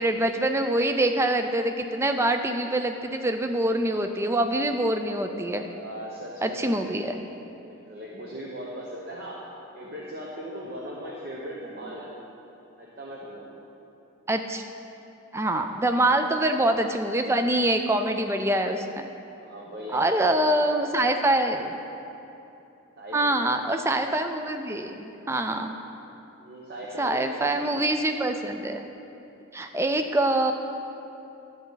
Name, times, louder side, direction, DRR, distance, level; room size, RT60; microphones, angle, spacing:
voice 1, 0.0-5.6 6.4-7.2 14.3-14.6 15.3-19.0 19.9-21.8 23.1-25.7 27.0-28.9 29.5-30.5, right 1 dB, 10° right, 6 dB, 0.4 m, -25 dB
voice 2, 5.7-7.2 7.6-9.4 9.7-12.1 12.8-13.5 19.4-20.8 23.0-23.5 26.4-27.7, equal, 45° right, -4 dB, 0.9 m, -39 dB
11.0 x 8.1 x 4.0 m, 2.9 s
head